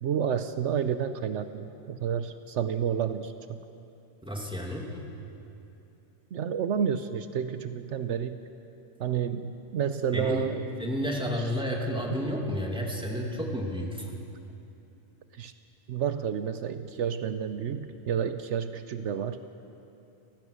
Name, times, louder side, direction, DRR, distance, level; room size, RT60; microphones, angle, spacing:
voice 1, 0.0-3.3 6.3-8.4 9.0-10.6 15.3-15.5 15.9-19.4, right 8 dB, 75° right, 10 dB, 1.0 m, -30 dB
voice 2, 4.2-4.9 10.1-10.5 10.8-14.1, equal, 5° right, -1 dB, 2.5 m, -31 dB
29.5 x 15.0 x 6.5 m, 2.8 s
omnidirectional pair, 1.2 m